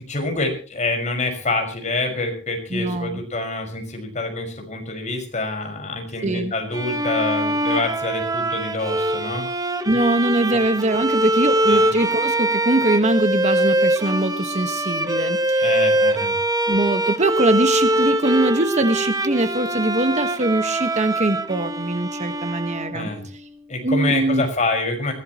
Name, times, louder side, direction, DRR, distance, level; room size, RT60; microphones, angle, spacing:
voice 1, 0.0-9.5 10.5-10.6 11.7-11.9 15.6-16.3 22.9-23.3 23.7-25.1, left 2 dB, 35° left, 4 dB, 5.6 m, -26 dB
voice 2, 2.7-3.2 6.2-6.5 9.9-15.8 16.7-23.1 23.8-24.4, right 2 dB, 35° right, 9 dB, 1.5 m, -22 dB
Bowed string instrument, 6.7-23.3, right 1 dB, 20° right, 1.4 m, -23 dB
22.5 x 16.5 x 3.1 m, 0.39 s
head